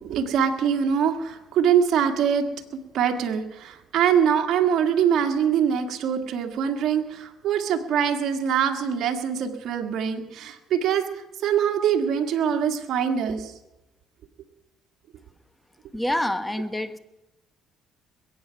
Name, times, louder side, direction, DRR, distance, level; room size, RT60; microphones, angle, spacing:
voice 1, 0.0-2.5 2.7-11.1 11.4-13.5, right 8 dB, 65° right, 4 dB, 1.7 m, -23 dB
voice 2, 15.9-17.0, left 1 dB, 10° left, 11 dB, 1.2 m, -27 dB
22.0 x 8.8 x 5.7 m, 0.96 s
supercardioid pair, 80°, 0 cm